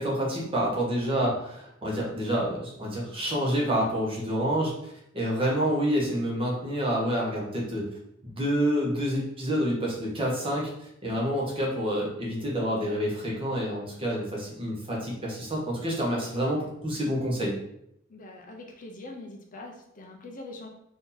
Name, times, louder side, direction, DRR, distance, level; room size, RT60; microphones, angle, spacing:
voice 1, 0.0-7.8 8.3-17.5, equal, 25° right, -3 dB, 0.9 m, -28 dB
voice 2, 18.1-20.7, left 2 dB, 40° left, 1 dB, 0.6 m, -43 dB
2.8 x 2.6 x 3.8 m, 0.76 s
head